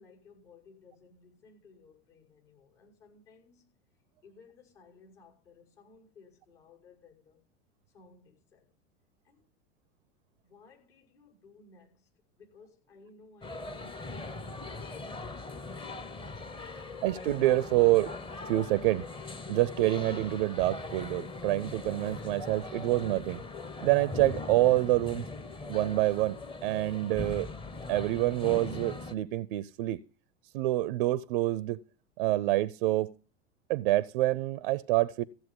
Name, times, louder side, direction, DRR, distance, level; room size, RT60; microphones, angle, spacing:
voice 1, 0.0-3.7 4.2-7.4 7.9-8.7 9.2-9.5 10.4-12.1 12.4-16.1, left 4 dB, 60° left, 6.0 m, -58 dB
sound 1, 13.4-29.1, left 3 dB, 15° left, 0.8 m, -40 dB
voice 2, 17.0-18.1 18.5-19.0 19.5-23.4 23.8-25.3 25.7-26.4 26.6-27.5 27.9-30.0 30.5-31.8 32.2-33.1 33.7-35.2, right 16 dB, 50° right, 0.5 m, -27 dB
15.5 x 7.7 x 5.3 m
figure-of-eight pair, 80°, 35 cm